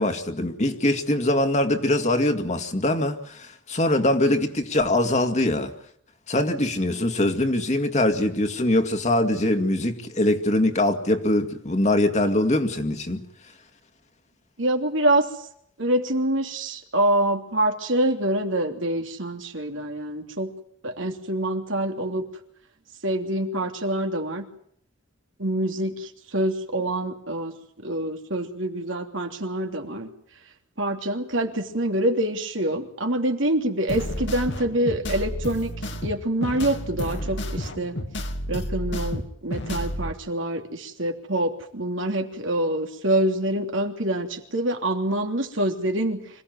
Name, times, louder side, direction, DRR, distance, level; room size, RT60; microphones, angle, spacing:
voice 1, 0.0-5.7 6.3-13.2, left 1 dB, 35° left, 2.2 m, -23 dB
voice 2, 14.6-15.5 15.8-20.5 20.8-22.3 23.0-24.5 25.4-27.6 27.8-30.1 30.8-38.0 38.5-46.3, right 1 dB, 75° right, 3.1 m, -26 dB
sound 1, 33.9-40.1, left 1 dB, 65° left, 2.4 m, -31 dB
26.0 x 17.0 x 9.3 m
head